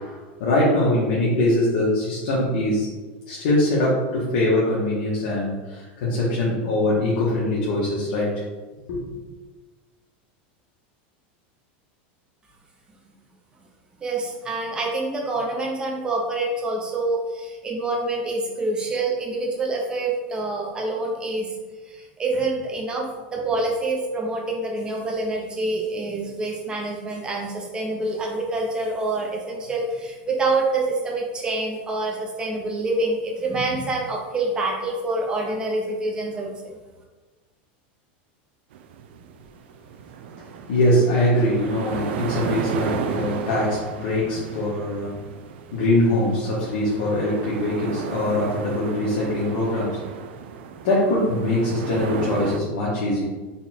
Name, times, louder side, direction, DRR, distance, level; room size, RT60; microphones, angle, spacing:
voice 1, 0.0-2.9 3.3-8.3 8.9-9.0 40.4-45.2 45.7-50.1 50.8-53.2, left 1 dB, 70° left, -6 dB, 1.1 m, -22 dB
voice 2, 14.0-21.5 21.9-36.5, right 2 dB, 15° right, -2 dB, 0.7 m, -26 dB
sound 1, 38.7-52.6, right 7 dB, 80° right, 0.4 m, -34 dB
4.1 x 2.3 x 4.2 m, 1.3 s
supercardioid pair, 155°, 6 cm